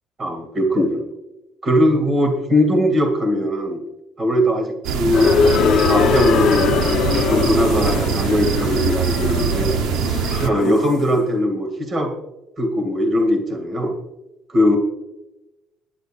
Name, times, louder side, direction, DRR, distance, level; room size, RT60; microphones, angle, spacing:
voice 1, 0.2-1.0 1.6-3.8 4.2-6.8 7.3-9.7 10.4-12.1 12.6-13.9 14.5-14.8, equal, 30° right, 4 dB, 2.4 m, -20 dB
sound 1, 4.8-10.5, right 7 dB, 75° right, 0.9 m, -22 dB
sound 2, 5.1-11.0, left 7 dB, 55° left, 0.9 m, -21 dB
21.0 x 10.5 x 2.5 m, 0.97 s
cardioid pair, 115°, 0 cm